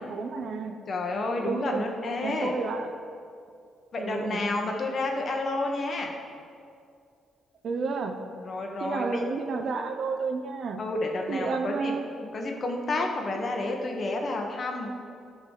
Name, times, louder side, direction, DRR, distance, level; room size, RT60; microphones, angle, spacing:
voice 1, 0.1-0.8 1.4-1.9 2.2-2.9 4.0-4.4 7.6-8.2 8.8-10.8 11.3-12.1, right 4 dB, 55° right, 6 dB, 0.8 m, -31 dB
voice 2, 0.9-2.6 3.9-6.1 8.4-9.2 10.8-11.9 12.2-14.9, left 2 dB, 45° left, 2 dB, 1.3 m, -30 dB
12.0 x 4.0 x 6.6 m, 2.4 s
cardioid pair, 90°, 0 cm